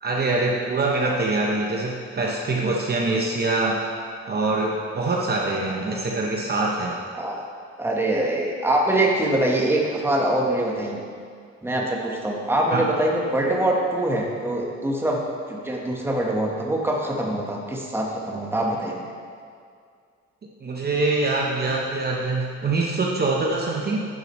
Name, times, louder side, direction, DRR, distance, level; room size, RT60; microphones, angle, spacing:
voice 1, 0.0-3.9 4.3-7.0 12.7-12.9 20.6-24.1, right 2 dB, 35° right, -2 dB, 0.8 m, -24 dB
voice 2, 7.1-7.4 7.8-11.0 11.6-15.2 15.5-19.0, right 1 dB, 10° right, -1 dB, 1.1 m, -24 dB
10.5 x 6.6 x 3.1 m, 2.2 s
cardioid pair, 110°, 29 cm